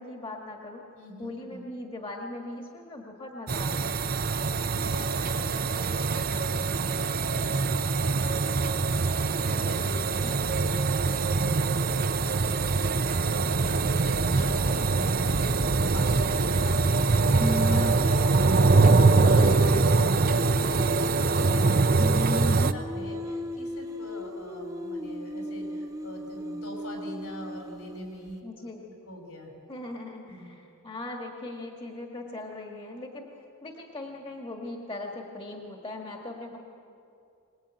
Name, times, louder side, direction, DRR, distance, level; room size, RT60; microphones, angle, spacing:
voice 1, 0.0-0.8 1.2-4.1 10.2-10.4 28.4-28.8 29.7-33.3 33.6-36.6, left 2 dB, 25° left, 1 dB, 1.8 m, -39 dB
voice 2, 0.9-1.7 4.5-29.7 30.3-30.5, equal, 75° left, 2 dB, 5.8 m, -43 dB
sound 1, 3.5-22.7, right 3 dB, 40° right, 0.7 m, -23 dB
Singing, 17.4-21.7 22.0-28.0, equal, 15° right, 1.0 m, -35 dB
23.5 x 20.0 x 9.0 m, 2.6 s
head